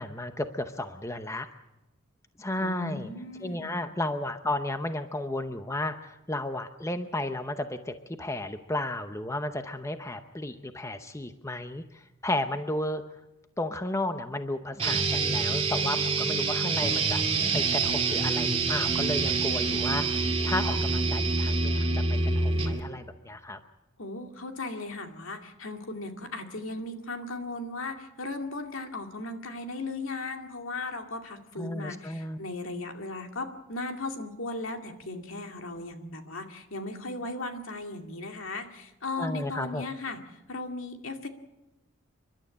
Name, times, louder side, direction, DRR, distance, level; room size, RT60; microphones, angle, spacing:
voice 1, 0.0-1.5 2.4-3.1 3.4-13.0 13.6-17.2 17.5-22.0 22.4-23.6 31.6-32.4 39.2-39.8, left 1 dB, 15° left, 8 dB, 0.8 m, -33 dB
voice 2, 2.6-3.9 24.0-40.2 40.5-41.3, left 2 dB, 70° left, 5 dB, 2.3 m, -37 dB
sound 1, 14.8-22.8, right 3 dB, 25° right, 2.4 m, -26 dB
30.0 x 12.0 x 8.6 m, 0.99 s
head